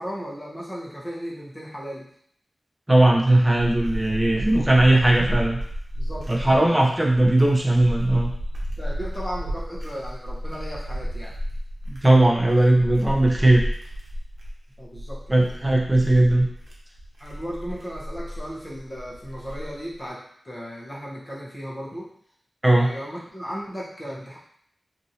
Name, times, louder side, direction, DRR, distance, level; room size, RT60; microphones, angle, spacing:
voice 1, 0.0-2.1 5.9-6.8 7.2-7.5 8.8-11.4 14.8-15.5 17.2-22.1 22.8-24.4, equal, 25° left, -5 dB, 0.9 m, -36 dB
voice 2, 2.9-5.6 6.3-8.3 11.9-13.6 15.3-16.5 22.6-22.9, right 1 dB, 20° right, -1 dB, 0.6 m, -18 dB
sound 1, 3.1-19.9, equal, 75° right, 0.7 m, -33 dB
3.0 x 2.6 x 2.7 m, 0.65 s
wide cardioid pair, 85°, 0 cm